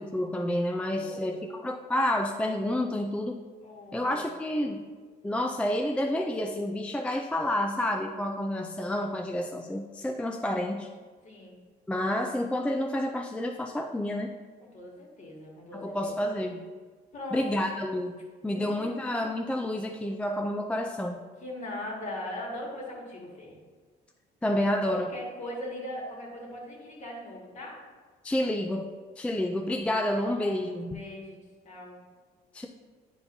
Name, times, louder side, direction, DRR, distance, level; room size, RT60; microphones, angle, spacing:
voice 1, 0.1-3.4 3.9-4.8 5.2-10.9 11.9-14.3 15.7-16.6 17.3-18.2 18.4-21.2 24.4-25.1 28.2-28.9 29.2-31.0 32.5-32.7, left 1 dB, 5° left, 3 dB, 0.3 m, -29 dB
voice 2, 0.9-1.5 3.6-4.3 11.2-11.6 14.6-16.1 17.1-17.5 18.5-18.9 21.4-23.6 24.8-27.8 30.2-31.4 31.6-32.0, left 1 dB, 45° left, -3 dB, 2.0 m, -40 dB
9.6 x 4.6 x 2.7 m, 1.5 s
cardioid pair, 110°, 17 cm